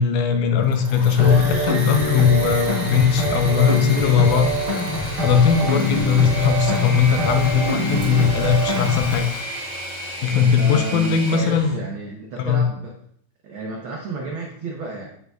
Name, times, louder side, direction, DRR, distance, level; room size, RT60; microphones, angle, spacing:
voice 1, 0.0-4.6 5.0-9.2 10.2-11.8 12.4-12.6, left 7 dB, 85° left, 6 dB, 2.2 m, -19 dB
Engine / Mechanisms, 0.6-11.8, equal, 35° left, 2.9 m, -32 dB
sound 1, 1.2-9.2, equal, 50° right, 0.3 m, -24 dB
voice 2, 10.3-12.9 13.4-15.0, right 3 dB, 85° right, -1 dB, 1.1 m, -32 dB
8.0 x 6.6 x 2.3 m, 0.67 s
omnidirectional pair, 3.5 m